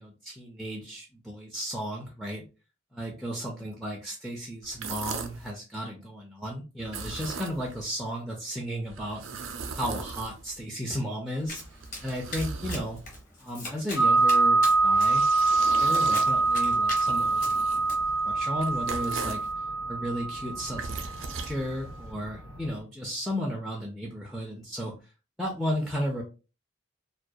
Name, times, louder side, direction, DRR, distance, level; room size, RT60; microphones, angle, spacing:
voice 1, 0.0-2.5 2.9-9.2 9.7-11.6 12.0-13.0 13.4-15.3 15.8-19.5 19.9-24.9 25.4-26.2, equal, ahead, -3 dB, 0.4 m, -34 dB
sound 1, 4.6-5.5 6.8-7.9 8.9-10.7 11.4-13.2 14.6-19.5 20.5-22.1, right 4 dB, 75° right, 0.4 m, -39 dB
Domestic sounds home sounds, 11.5-17.9, left 2 dB, 40° left, 0.8 m, -41 dB
sound 2, 14.0-22.8, right 3 dB, 75° left, 0.6 m, -25 dB
2.2 x 2.2 x 2.6 m, 0.32 s
head